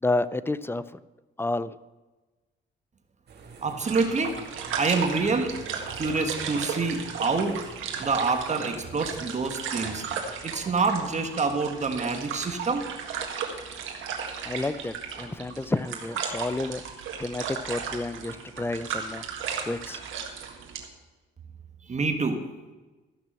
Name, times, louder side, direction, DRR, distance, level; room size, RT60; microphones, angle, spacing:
voice 1, 0.0-0.8 1.4-1.7 14.4-16.8 17.2-19.2 19.6-20.0, left 2 dB, 10° left, 16 dB, 0.4 m, -30 dB
sound 1, 3.3-9.4, right 3 dB, 55° right, 2.2 m, -47 dB
voice 2, 3.6-5.6 5.9-7.6 8.0-12.9 21.8-22.5, right 4 dB, 35° right, 6 dB, 1.4 m, -27 dB
sound 2, 3.8-20.9, right 6 dB, 80° right, 1.8 m, -35 dB
14.0 x 6.1 x 7.5 m, 1.2 s
cardioid pair, 90°, 20 cm